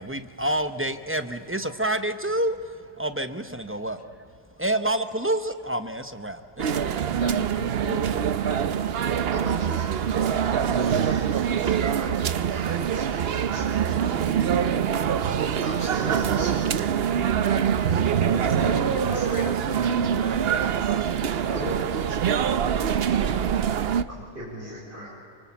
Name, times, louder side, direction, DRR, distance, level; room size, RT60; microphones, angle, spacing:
voice 1, 0.0-4.3 4.6-7.0, right 1 dB, 10° right, 9 dB, 0.7 m, -28 dB
sound 1, 6.6-24.0, right 8 dB, 55° right, 0.8 m, -24 dB
voice 2, 7.2-8.2 17.4-21.0, left 6 dB, 65° left, 7 dB, 2.0 m, -40 dB
voice 3, 9.3-12.1 12.5-14.0 15.6-16.9 19.1-19.2 21.5-22.5 24.1-25.1, equal, 35° right, -5 dB, 6.4 m, -38 dB
25.5 x 24.5 x 7.3 m, 2.4 s
omnidirectional pair, 1.5 m